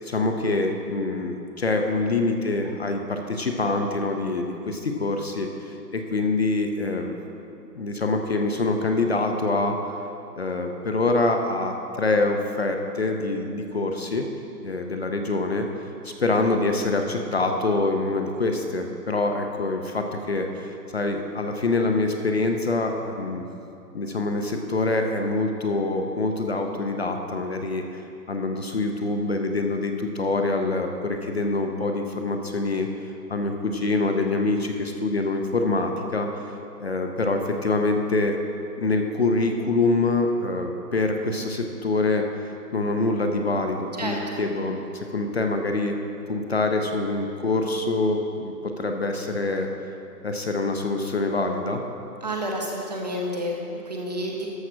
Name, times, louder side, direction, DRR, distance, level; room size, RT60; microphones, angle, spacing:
voice 1, 0.0-7.2 7.7-9.9 10.4-14.3 14.6-15.7 16.0-23.4 23.9-28.0 28.3-32.9 33.3-36.3 36.8-38.4 38.8-42.3 42.7-46.0 46.3-49.7 50.2-51.8, left 2 dB, 40° left, 4 dB, 0.6 m, -25 dB
voice 2, 44.0-44.4 52.2-54.5, equal, 25° right, 0 dB, 0.8 m, -30 dB
13.0 x 5.8 x 6.1 m, 2.7 s
hypercardioid pair, 170°, 49 cm